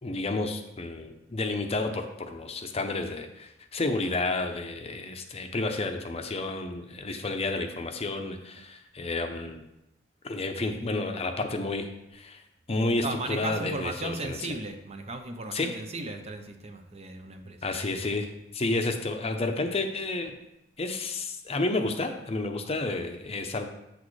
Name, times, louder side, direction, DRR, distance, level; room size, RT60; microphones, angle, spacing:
voice 1, 0.0-9.6 10.2-12.4 12.7-14.4 15.5-15.7 17.6-20.3 20.8-23.7, left 2 dB, 35° left, 6 dB, 0.6 m, -31 dB
voice 2, 13.0-17.6 18.8-18.9, right 2 dB, 35° right, 6 dB, 0.6 m, -36 dB
8.3 x 6.3 x 3.2 m, 0.87 s
head